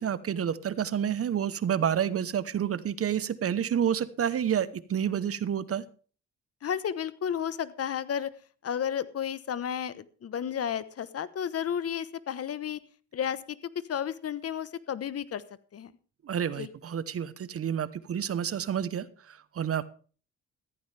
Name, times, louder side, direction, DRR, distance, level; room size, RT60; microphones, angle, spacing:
voice 1, 0.0-5.8 16.2-19.9, right 9 dB, 50° right, 16 dB, 1.0 m, -29 dB
voice 2, 6.6-8.3 8.6-12.8 13.1-13.6 13.9-15.4 15.7-15.9 16.6-16.7, left 8 dB, 50° left, 16 dB, 1.2 m, -32 dB
14.5 x 14.5 x 3.4 m, 0.40 s
cardioid pair, 90°, 30 cm